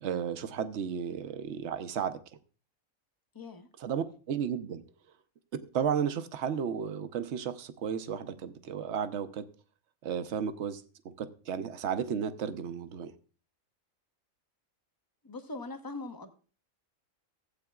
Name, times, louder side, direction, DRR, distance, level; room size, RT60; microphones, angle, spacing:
voice 1, 0.0-2.2 3.8-4.8 5.5-9.4 10.0-13.1, right 7 dB, 60° right, 1.0 m, -33 dB
voice 2, 3.3-3.7 15.2-16.3, left 3 dB, 20° left, 0.8 m, -41 dB
15.5 x 8.2 x 2.3 m
omnidirectional pair, 1.4 m